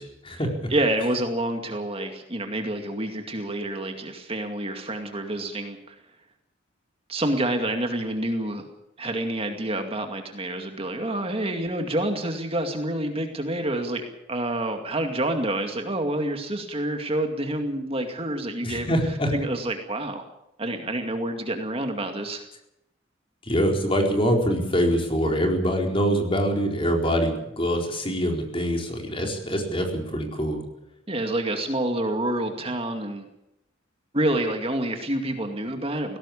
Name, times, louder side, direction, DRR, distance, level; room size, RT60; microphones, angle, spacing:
voice 1, 0.0-0.5 18.6-19.3 23.4-30.6, equal, 30° left, 2 dB, 4.4 m, -24 dB
voice 2, 0.7-6.0 7.1-8.7 9.0-18.9 19.3-20.2 20.6-22.4 31.1-33.3 34.1-36.2, right 1 dB, 30° right, 5 dB, 2.3 m, -28 dB
19.0 x 17.5 x 8.5 m, 0.83 s
head